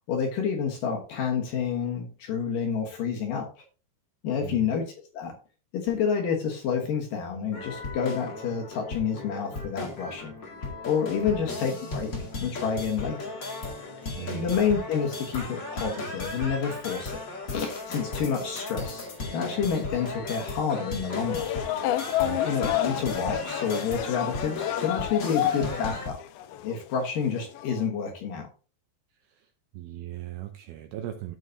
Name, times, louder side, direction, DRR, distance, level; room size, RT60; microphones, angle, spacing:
voice 1, 0.1-3.5 4.2-5.3 5.7-10.3 10.8-12.1 12.4-13.2 14.2-17.2 17.5-21.5 22.4-26.2 26.6-28.5, left 6 dB, 65° left, 1 dB, 2.5 m, -29 dB
voice 2, 4.4-4.8 11.2-11.6 14.1-14.7 22.2-22.5 29.2-31.4, right 13 dB, 75° right, 6 dB, 2.3 m, -39 dB
sound 1, 7.5-26.1, left 2 dB, 35° left, 1.9 m, -36 dB
sound 2, 21.2-25.9 26.2-27.0 27.3-27.8, left 12 dB, 80° left, 2.3 m, -30 dB
14.5 x 5.7 x 2.7 m, 0.37 s
omnidirectional pair, 4.8 m